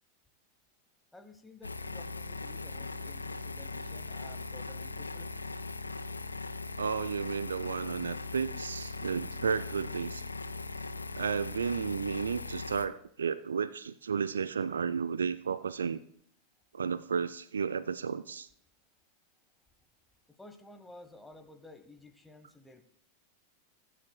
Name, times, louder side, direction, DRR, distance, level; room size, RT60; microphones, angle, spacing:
voice 1, 1.1-5.3 20.4-22.8, left 2 dB, 5° left, 7 dB, 1.1 m, -53 dB
sound 1, 1.6-12.9, left 3 dB, 80° left, 0.6 m, -40 dB
voice 2, 6.8-10.2 11.2-16.0 16.7-18.5, right 6 dB, 70° right, 14 dB, 0.4 m, -33 dB
22.0 x 10.0 x 2.3 m, 0.67 s
figure-of-eight pair, 90°, 0 cm